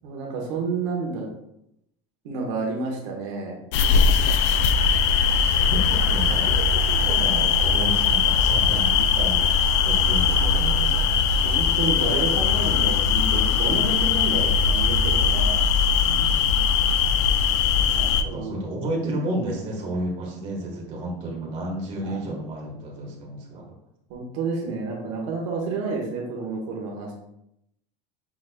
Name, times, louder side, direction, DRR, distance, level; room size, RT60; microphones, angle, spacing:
voice 1, 0.0-1.2 2.2-3.6 11.5-15.6 17.9-18.6 22.0-22.2 24.1-27.1, right 4 dB, 80° right, -1 dB, 1.2 m, -30 dB
sound 1, 3.7-18.2, left 6 dB, 75° left, 0.4 m, -20 dB
voice 2, 5.2-11.3 16.0-16.7 18.1-23.6, right 1 dB, 35° right, -2 dB, 1.3 m, -32 dB
6.0 x 3.9 x 2.2 m, 0.79 s
cardioid pair, 160°, 15 cm